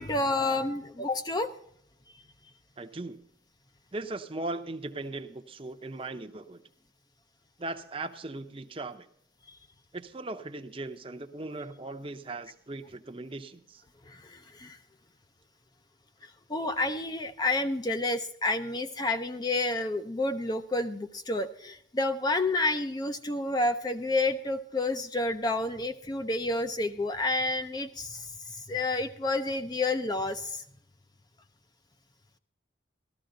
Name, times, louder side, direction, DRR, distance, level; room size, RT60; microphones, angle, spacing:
voice 1, 0.0-1.5 9.5-9.6 14.1-14.8 16.2-30.6, left 2 dB, 20° left, 8 dB, 0.5 m, -30 dB
voice 2, 2.8-3.2 3.9-6.6 7.6-9.1 9.9-13.8, right 2 dB, 25° right, 7 dB, 0.7 m, -38 dB
13.5 x 13.0 x 3.9 m, 0.70 s
head